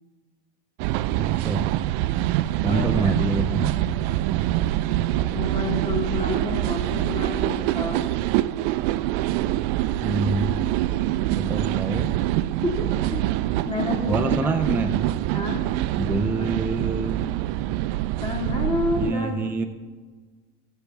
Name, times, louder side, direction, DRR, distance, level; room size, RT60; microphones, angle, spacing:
sound 1, 0.8-19.1, right 15 dB, 60° right, 0.5 m, -25 dB
voice 1, 1.1-1.7 2.6-3.8 10.0-10.5 11.3-12.1 14.1-15.0 16.0-17.3 18.9-19.6, right 3 dB, 5° right, 5 dB, 0.4 m, -26 dB
voice 2, 2.6-3.2 5.3-8.1 12.6-12.7 13.0-13.2 13.6-14.8 15.3-15.6 16.4-16.5 18.2-19.4, left 3 dB, 15° left, 1 dB, 1.8 m, -29 dB
18.0 x 7.3 x 3.4 m, 1.4 s
supercardioid pair, 135°, 35 cm